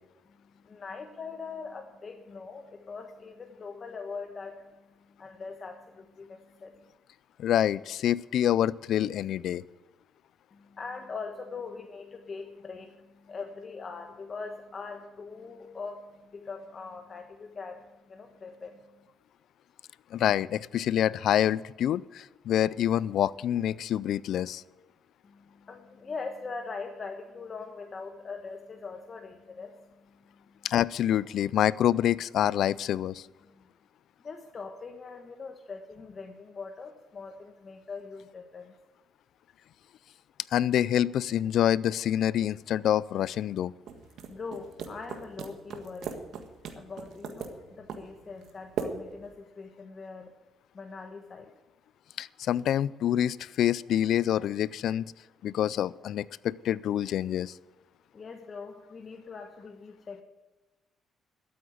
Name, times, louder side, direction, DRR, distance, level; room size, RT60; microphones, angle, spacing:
voice 1, 0.4-6.9 10.5-19.1 25.2-30.7 33.4-33.7 34.2-38.7 44.3-46.2 46.8-50.3 50.7-51.5 58.1-60.2, left 4 dB, 40° left, 4 dB, 1.2 m, -42 dB
voice 2, 7.4-9.6 20.1-24.6 30.6-33.3 40.5-43.7 52.2-55.1 55.4-57.5, left 11 dB, 75° left, 21 dB, 0.4 m, -26 dB
sound 1, 43.9-49.4, right 6 dB, 75° right, 1.6 m, -40 dB
12.5 x 8.6 x 8.0 m, 1.2 s
cardioid pair, 90°, 0 cm